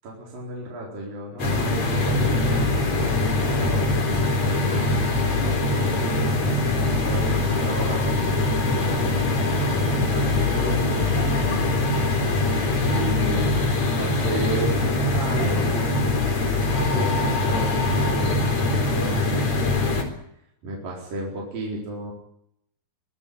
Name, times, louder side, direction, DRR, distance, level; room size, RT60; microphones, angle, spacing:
voice 1, 0.0-3.9 4.7-6.3 7.1-9.2 9.8-11.9 12.8-16.1 16.6-19.9 20.6-22.1, right 1 dB, 55° right, -2 dB, 5.9 m, -33 dB
sound 1, 1.4-20.0, left 2 dB, 40° left, 4.9 m, -22 dB
25.0 x 17.0 x 8.6 m, 0.74 s
omnidirectional pair, 4.7 m